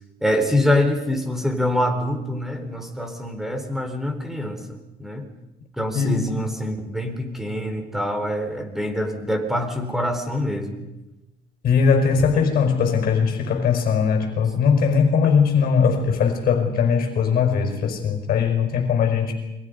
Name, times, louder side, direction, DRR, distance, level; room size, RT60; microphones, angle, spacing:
voice 1, 0.2-5.3 5.8-10.8, left 1 dB, ahead, 6 dB, 4.4 m, -25 dB
voice 2, 11.6-19.3, left 6 dB, 55° left, 3 dB, 5.2 m, -20 dB
29.5 x 23.0 x 5.4 m, 1.0 s
cardioid pair, 110°, 17 cm